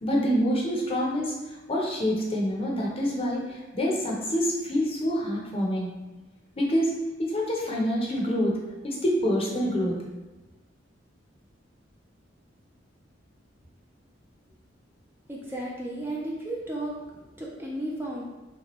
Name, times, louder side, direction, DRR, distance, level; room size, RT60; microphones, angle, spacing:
voice 1, 0.0-1.3 1.7-5.9 6.6-6.9 7.2-8.6 8.8-10.0, equal, 30° left, -2 dB, 0.7 m, -26 dB
voice 2, 15.3-17.0 17.4-18.2, right 1 dB, 10° right, -4 dB, 0.4 m, -33 dB
3.3 x 3.0 x 3.0 m, 1.1 s
head